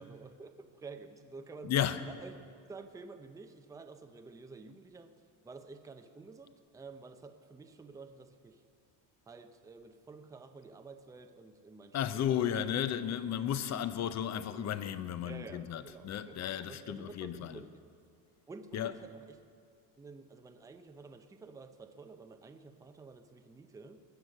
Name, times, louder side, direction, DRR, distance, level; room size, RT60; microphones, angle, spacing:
voice 1, 0.0-1.7 2.1-2.4 2.7-5.1 5.4-8.6 9.3-12.5 15.2-17.9 18.5-19.4 20.0-24.0, right 4 dB, 10° right, 0.6 m, -50 dB
voice 2, 1.6-2.1 11.9-17.7 18.7-19.0, left 10 dB, 40° left, 0.7 m, -34 dB
20.0 x 7.9 x 6.5 m
cardioid pair, 135°, 44 cm